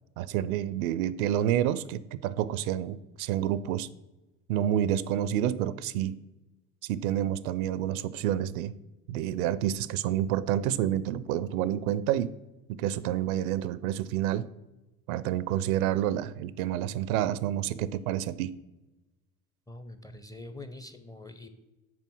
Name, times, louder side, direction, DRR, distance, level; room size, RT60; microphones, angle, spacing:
voice 1, 0.2-3.9 4.5-6.1 6.8-8.7 9.1-12.3 12.7-14.5 15.1-18.5, right 11 dB, 65° right, 17 dB, 0.5 m, -29 dB
voice 2, 19.7-21.6, left 2 dB, 10° left, 8 dB, 0.4 m, -44 dB
6.1 x 4.2 x 6.1 m, 1.0 s
hypercardioid pair, 70°, 45 cm